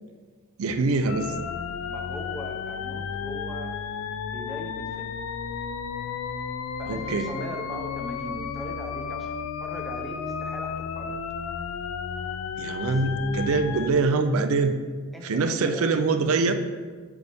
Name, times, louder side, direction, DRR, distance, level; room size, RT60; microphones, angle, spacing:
voice 1, 0.6-1.3 6.9-7.3 12.6-14.8 15.2-16.5, right 3 dB, 80° right, 8 dB, 0.4 m, -24 dB
sound 1, 1.1-13.9, left 6 dB, 75° left, 0.3 m, -33 dB
voice 2, 1.8-3.7 4.3-5.2 6.8-11.2 12.8-13.0 15.1-15.9, equal, ahead, 1 dB, 0.5 m, -40 dB
6.9 x 5.4 x 3.4 m, 1.5 s
head